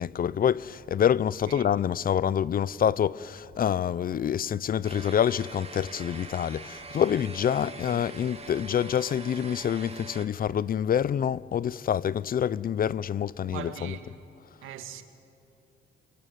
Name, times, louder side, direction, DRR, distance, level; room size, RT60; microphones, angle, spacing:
voice 1, 0.0-13.9, left 9 dB, 45° left, 0.6 m, -27 dB
sound 1, 4.8-10.3, right 4 dB, 30° right, 2.6 m, -44 dB
voice 2, 13.5-14.1 14.6-15.0, right 10 dB, 90° right, 2.1 m, -41 dB
25.5 x 23.5 x 9.2 m
cardioid pair, 90°, 20 cm